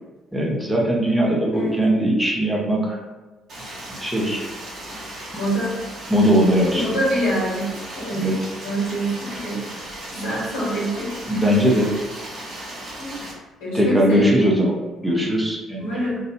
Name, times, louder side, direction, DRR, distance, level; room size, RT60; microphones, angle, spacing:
voice 1, 0.3-3.0 4.0-4.4 6.1-6.8 8.2-8.5 11.3-11.9 13.7-14.7 15.0-15.8, equal, 5° right, -3 dB, 0.6 m, -20 dB
Stream, 3.5-13.3, right 1 dB, 50° right, 0.8 m, -36 dB
voice 2, 5.4-5.7 6.7-7.7 7.9-8.3 8.6-9.6 10.1-11.4 13.0-13.2 13.6-14.6 15.8-16.2, right 1 dB, 70° left, -7 dB, 1.0 m, -25 dB
2.3 x 2.0 x 2.9 m, 1.2 s
figure-of-eight pair, 45°, 0 cm